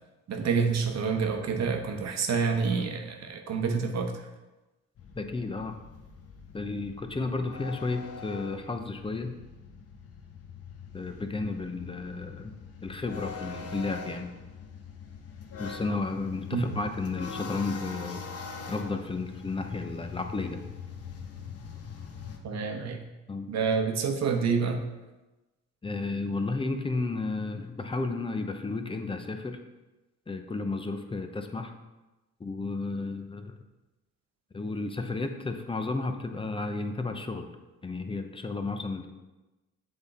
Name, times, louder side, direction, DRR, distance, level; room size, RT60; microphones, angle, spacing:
voice 1, 0.3-4.3 16.5-16.8 22.4-23.0 23.5-24.8, right 5 dB, 60° right, 4 dB, 1.0 m, -28 dB
sound 1, 5.0-22.4, left 5 dB, 50° left, 0.9 m, -43 dB
voice 2, 5.2-5.8 6.5-9.3 10.9-12.5 12.8-14.3 15.6-18.2 18.7-20.6 23.3-23.5 25.8-29.6 30.3-31.7 32.4-33.6 34.5-37.5 37.8-39.1, left 3 dB, 15° left, 6 dB, 0.6 m, -32 dB
7.8 x 3.5 x 4.1 m, 1.1 s
cardioid pair, 90°, 30 cm